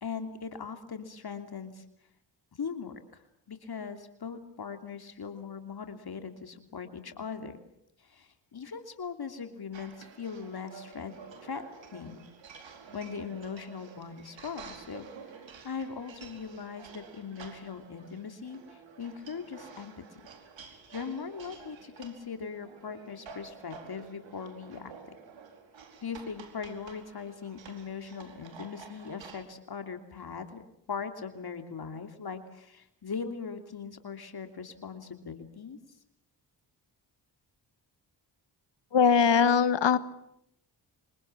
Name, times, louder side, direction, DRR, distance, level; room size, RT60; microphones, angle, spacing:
voice 1, 0.0-1.8 2.5-7.6 8.0-11.2 11.4-12.2 12.6-20.2 20.9-24.9 26.0-30.6 30.9-35.8, left 6 dB, 55° left, 7 dB, 3.1 m, -40 dB
sound 1, 9.7-29.4, right 5 dB, 80° right, 4.6 m, -50 dB
voice 2, 38.9-40.0, left 6 dB, 70° left, 13 dB, 1.8 m, -21 dB
26.0 x 25.0 x 7.4 m, 0.76 s
cardioid pair, 70°, 45 cm